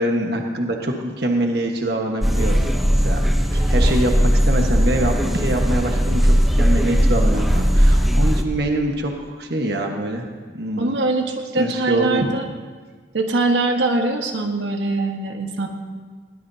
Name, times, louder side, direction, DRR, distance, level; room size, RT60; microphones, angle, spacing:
voice 1, 0.0-10.9 11.6-12.3, right 1 dB, 60° right, 2 dB, 1.3 m, -24 dB
sound 1, 2.2-8.4, equal, ahead, 0.9 m, -17 dB
voice 2, 10.8-12.5 13.1-15.7, right 2 dB, 80° right, 3 dB, 1.4 m, -22 dB
20.5 x 19.0 x 2.8 m, 1.5 s
head